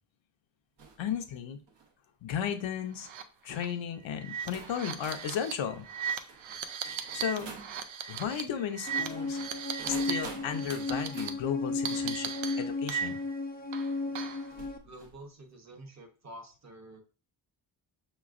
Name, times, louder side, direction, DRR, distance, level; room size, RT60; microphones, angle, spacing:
sound 1, 0.8-1.1 1.6-1.9 2.8-3.0 3.9-4.0 4.5-7.8 8.7-11.4 13.1-13.2 14.5-15.2, right 4 dB, 65° right, 0.9 m, -48 dB
voice 1, 1.0-1.6 2.2-3.1 3.4-5.9 7.1-7.5 8.1-9.4 9.9-12.3 12.6-13.2, left 8 dB, 80° left, 6 dB, 0.7 m, -34 dB
sound 2, 3.0-3.2 3.5-3.7 4.2-10.3 10.5-11.3 11.9-13.4 13.7-14.5, right 7 dB, 90° right, 0.6 m, -37 dB
sound 3, 8.9-14.8, left 3 dB, 20° left, 0.4 m, -34 dB
voice 2, 14.8-17.0, right 1 dB, 35° right, 3 dB, 1.0 m, -48 dB
5.8 x 3.0 x 2.5 m, 0.35 s
wide cardioid pair, 115°, 45 cm